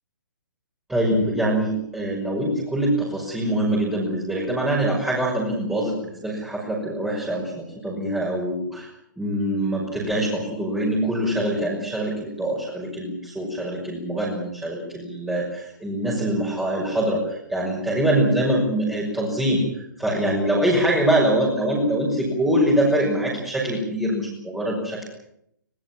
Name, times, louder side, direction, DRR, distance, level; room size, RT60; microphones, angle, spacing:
voice 1, 0.9-8.9 9.2-25.0, right 1 dB, 5° right, -4 dB, 6.0 m, -24 dB
23.5 x 21.0 x 7.4 m, 0.74 s
figure-of-eight pair, 125°, 11 cm